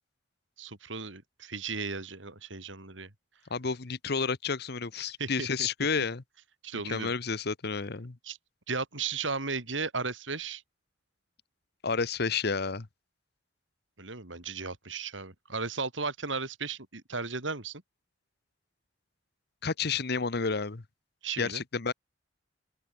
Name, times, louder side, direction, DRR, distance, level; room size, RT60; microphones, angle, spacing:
voice 1, 0.6-3.1 5.2-5.7 6.6-7.1 8.2-8.4 8.7-10.6 14.0-17.8 21.2-21.6, right 4 dB, 90° right, 3.7 m, -35 dB
voice 2, 3.5-6.2 6.8-8.2 11.8-12.9 19.6-20.8 21.4-21.9, left 5 dB, 60° left, 1.0 m, -30 dB
open air
head